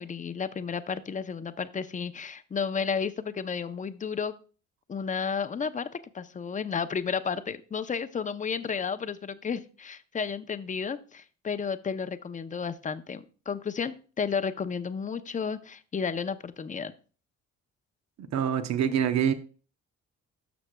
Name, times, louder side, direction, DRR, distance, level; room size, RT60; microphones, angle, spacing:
voice 1, 0.0-4.3 4.9-5.9 6.1-16.9, left 6 dB, 25° left, 12 dB, 0.6 m, -32 dB
voice 2, 18.2-19.3, right 8 dB, 65° right, 10 dB, 0.8 m, -25 dB
13.0 x 6.0 x 2.2 m, 0.37 s
cardioid pair, 90°, 30 cm